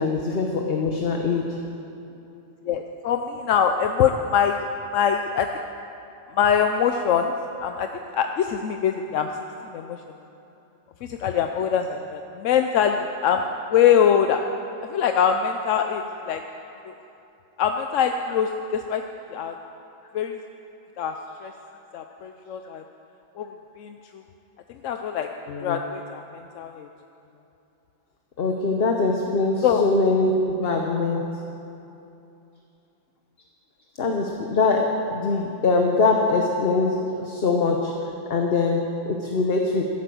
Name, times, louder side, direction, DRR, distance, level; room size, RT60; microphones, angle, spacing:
voice 1, 0.0-1.4 28.4-31.2 34.0-34.9 35.1-37.0 37.3-37.9 38.3-38.8 39.1-39.8, left 3 dB, 50° left, 2 dB, 1.2 m, -22 dB
voice 2, 2.7-4.6 4.9-5.6 6.3-7.3 7.6-7.9 8.1-9.3 9.7-10.0 11.0-13.4 13.7-14.4 14.9-16.4 16.9-17.0 17.6-19.0 19.3-19.5 20.1-20.4 21.0-21.1 21.4-21.5 21.9-22.8 23.4-23.5 23.8-23.9 24.8-26.9 29.6-29.8, left 8 dB, 75° left, 5 dB, 1.0 m, -23 dB
13.5 x 11.0 x 7.7 m, 2.8 s
omnidirectional pair, 1.3 m